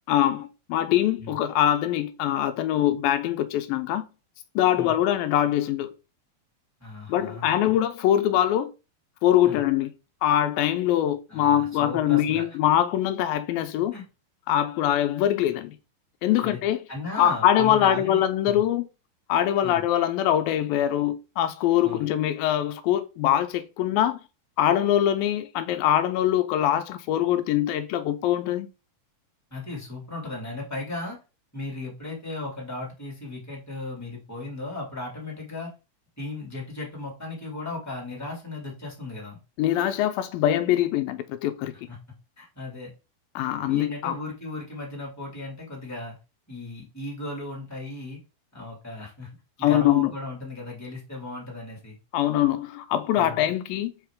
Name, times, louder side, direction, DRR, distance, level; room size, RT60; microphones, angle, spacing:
voice 1, 0.1-4.0 4.6-5.9 7.1-8.7 9.2-9.9 10.2-13.9 14.5-15.8 16.2-16.8 17.1-18.8 19.3-24.2 24.6-28.7 39.6-41.7 43.4-44.2 49.6-50.1 52.1-53.9, left 11 dB, 80° left, 2.2 m, -23 dB
voice 2, 6.8-7.5 9.4-9.6 11.3-12.5 13.9-14.0 16.4-16.6 16.9-18.6 19.6-19.8 21.8-22.1 29.5-31.2 31.5-35.7 36.2-39.4 41.9-42.0 42.4-42.9 43.6-46.1 46.5-48.2 48.5-49.3 49.6-52.0 53.1-53.5, left 2 dB, 5° left, 1.4 m, -36 dB
5.6 x 5.2 x 3.6 m
omnidirectional pair, 4.4 m